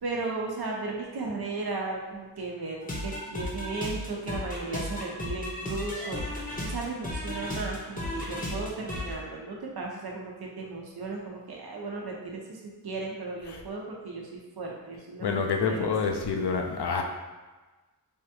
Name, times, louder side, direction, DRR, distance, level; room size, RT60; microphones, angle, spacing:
voice 1, 0.0-15.4 15.7-15.9, right 3 dB, 60° right, -1 dB, 0.8 m, -35 dB
sound 1, 2.8-9.1, left 1 dB, 20° left, 0.8 m, -35 dB
voice 2, 15.2-17.0, left 5 dB, 65° left, 3 dB, 0.5 m, -27 dB
3.4 x 2.3 x 2.8 m, 1.2 s
cardioid pair, 40°, 43 cm